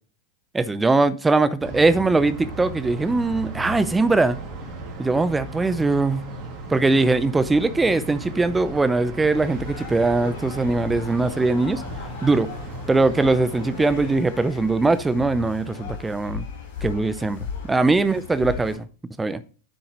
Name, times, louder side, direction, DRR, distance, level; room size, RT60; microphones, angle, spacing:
voice 1, 0.5-4.4 5.0-6.2 6.7-11.8 12.2-12.5 12.9-16.4 16.8-17.4 17.7-18.9 19.2-19.4, right 3 dB, 10° right, 16 dB, 0.6 m, -21 dB
sound 1, 1.6-14.2, right 2 dB, 35° right, 2.8 m, -36 dB
sound 2, 9.3-18.8, left 6 dB, 55° left, 4.2 m, -36 dB
9.8 x 7.8 x 3.1 m, 0.37 s
figure-of-eight pair, 90°, 0 cm